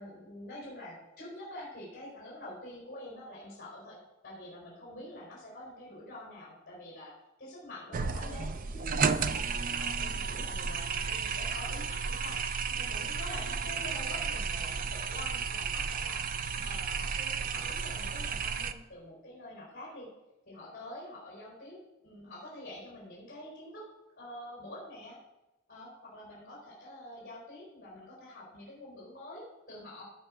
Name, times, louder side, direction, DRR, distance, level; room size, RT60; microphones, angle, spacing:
voice 1, 0.0-4.0 4.2-7.1 7.4-12.4 12.7-16.2 16.6-20.1 20.5-21.8 22.0-23.9 24.2-25.2 25.7-30.0, left 1 dB, 45° left, -6 dB, 4.4 m, -46 dB
sound 1, 7.9-18.7, right 5 dB, 40° right, 0.5 m, -33 dB
16.0 x 5.6 x 4.9 m, 0.98 s
head